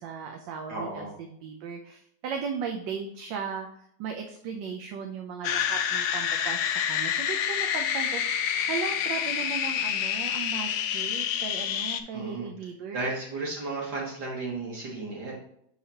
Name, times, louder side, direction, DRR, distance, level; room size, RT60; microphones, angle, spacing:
voice 1, 0.0-13.0, right 6 dB, 75° right, 4 dB, 1.3 m, -37 dB
voice 2, 0.7-1.1 12.1-12.5 12.9-15.4, right 3 dB, 55° right, -3 dB, 2.5 m, -34 dB
sound 1, 5.4-12.0, left 8 dB, 70° left, 1.0 m, -28 dB
6.7 x 5.7 x 2.8 m, 0.73 s
omnidirectional pair, 2.2 m